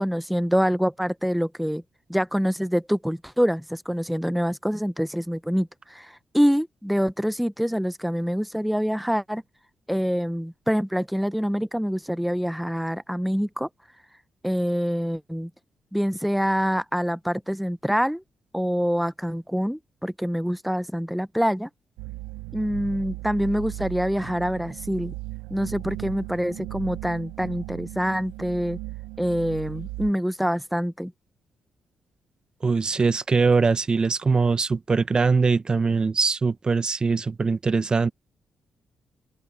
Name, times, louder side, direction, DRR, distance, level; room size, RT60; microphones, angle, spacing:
voice 1, 0.0-1.8 2.1-9.4 9.9-13.7 14.4-15.5 15.9-18.2 18.5-21.7 22.5-25.1 25.5-28.8 29.2-31.1, equal, ahead, 0.9 m, -25 dB
sound 1, 22.0-30.1, right 19 dB, 85° right, 0.8 m, -37 dB
voice 2, 32.6-38.1, right 4 dB, 40° right, 1.1 m, -22 dB
open air
hypercardioid pair, 45°, 2 cm